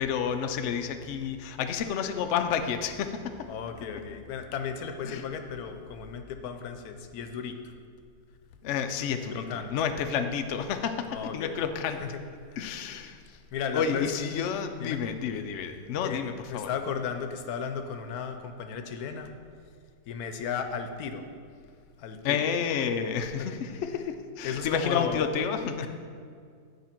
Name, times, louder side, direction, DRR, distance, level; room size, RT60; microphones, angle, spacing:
voice 1, 0.0-3.5 5.1-5.2 8.6-12.0 12.6-13.4 13.7-16.7 22.2-25.9, left 7 dB, 65° left, 7 dB, 0.7 m, -30 dB
voice 2, 3.5-7.7 9.3-9.8 11.1-11.5 12.0-12.2 12.5-12.6 13.5-14.1 14.8-15.0 16.0-16.2 16.5-19.3 20.1-21.4 22.0-22.4 23.4-23.5 24.4-25.3 25.8-25.9, left 6 dB, 85° left, 7 dB, 1.1 m, -35 dB
9.5 x 4.9 x 4.4 m, 2.2 s
omnidirectional pair, 1.6 m